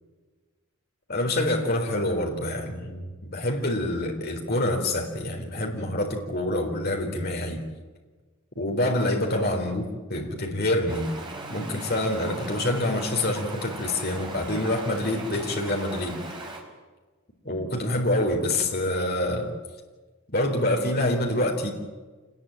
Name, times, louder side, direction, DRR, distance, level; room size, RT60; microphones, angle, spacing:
voice 1, 1.1-7.6 8.6-9.8 10.1-11.1 11.5-16.2 17.4-19.5 20.3-21.7, left 1 dB, 45° left, 2 dB, 4.1 m, -26 dB
Stream, 10.9-16.6, right 2 dB, 20° right, 4.9 m, -38 dB
27.0 x 20.5 x 8.9 m, 1.3 s
head